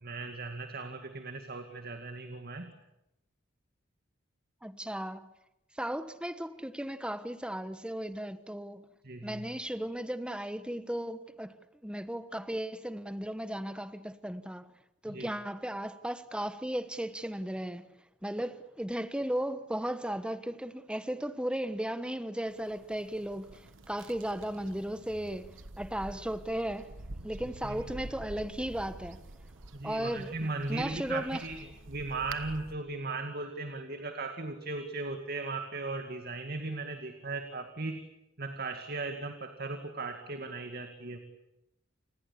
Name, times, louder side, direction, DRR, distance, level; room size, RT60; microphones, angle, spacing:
voice 1, 0.0-2.7 9.0-9.5 15.1-15.3 27.6-27.8 29.7-31.6 31.9-38.0 38.4-41.2, right 3 dB, 55° right, 2.2 m, -37 dB
voice 2, 4.6-5.3 5.8-8.9 9.2-11.5 11.8-14.7 15.0-17.8 18.2-27.0 27.2-29.2 29.8-30.3 30.7-31.4, right 1 dB, 5° right, 1.2 m, -36 dB
sound 1, 22.5-32.7, right 2 dB, 80° right, 1.4 m, -48 dB
29.0 x 20.5 x 8.5 m
head